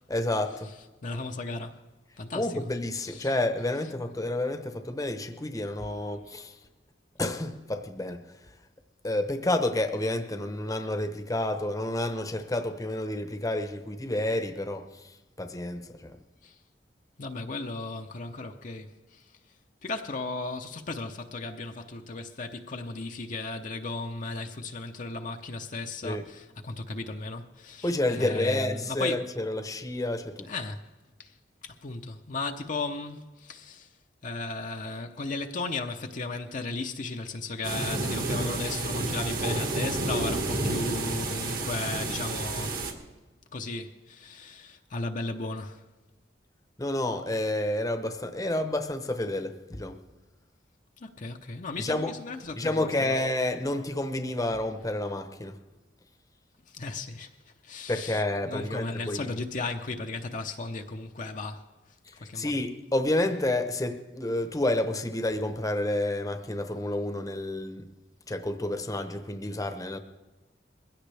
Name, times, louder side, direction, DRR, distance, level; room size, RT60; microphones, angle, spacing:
voice 1, 0.1-0.7 2.3-6.5 7.2-8.2 9.0-16.2 26.0-26.2 27.8-30.5 46.8-50.0 51.8-52.1 52.6-55.6 57.9-59.4 62.3-67.8 68.3-70.0, left 1 dB, 20° left, 0.9 m, -30 dB
voice 2, 1.0-1.8 2.2-2.6 3.0-3.3 16.4-16.5 17.2-19.2 19.8-29.2 30.5-30.8 31.2-31.3 31.6-33.9 34.2-42.8 43.5-45.8 51.0-53.1 56.7-57.3 57.6-61.7 62.2-62.5, left 3 dB, 45° left, 0.8 m, -35 dB
sound 1, 37.6-42.9, right 2 dB, 55° right, 1.8 m, -30 dB
21.5 x 16.5 x 3.4 m
head